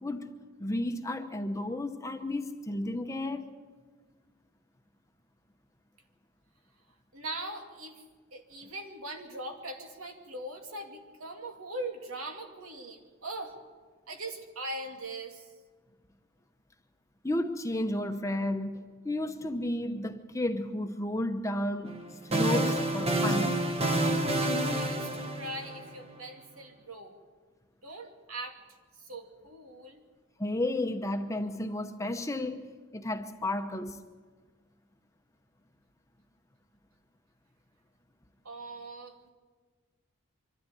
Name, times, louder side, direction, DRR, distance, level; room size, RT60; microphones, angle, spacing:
voice 1, 0.0-3.5 17.2-23.5 30.4-32.6 32.9-34.0, left 1 dB, 15° left, 0.9 m, -32 dB
voice 2, 7.1-13.6 14.1-15.5 24.4-27.1 27.8-28.6 28.9-30.0 38.4-39.3, right 2 dB, 85° right, 2.6 m, -41 dB
sound 1, 21.9-26.1, right 1 dB, 30° right, 1.3 m, -28 dB
25.0 x 13.0 x 9.0 m
head